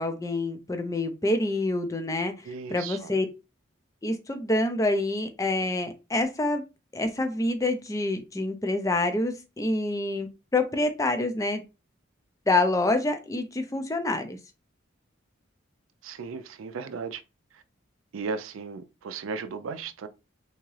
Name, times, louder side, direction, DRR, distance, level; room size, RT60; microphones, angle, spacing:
voice 1, 0.0-3.3 4.0-6.6 6.9-11.6 12.5-14.4, left 2 dB, 15° left, 0.5 m, -27 dB
voice 2, 2.4-3.1 16.0-17.2 17.5-17.6 18.1-20.1, right 4 dB, 90° right, 0.4 m, -36 dB
3.5 x 2.8 x 3.1 m
head